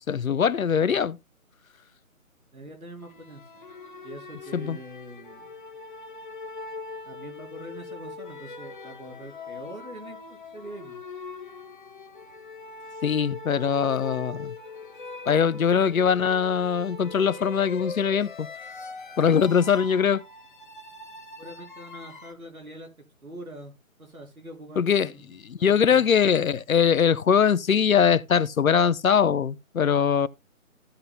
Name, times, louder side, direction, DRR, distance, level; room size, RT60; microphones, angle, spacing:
voice 1, 0.1-1.2 4.5-4.8 13.0-14.5 15.3-18.5 19.2-20.2 24.8-30.3, left 7 dB, 75° left, 0.7 m, -22 dB
voice 2, 2.5-3.6 4.0-5.5 7.1-11.0 21.4-22.9 23.2-23.7 24.0-26.0, right 1 dB, 90° right, 3.8 m, -43 dB
sound 1, 3.0-22.3, left 3 dB, 35° left, 0.9 m, -41 dB
15.5 x 6.9 x 2.2 m
figure-of-eight pair, 165°, 42 cm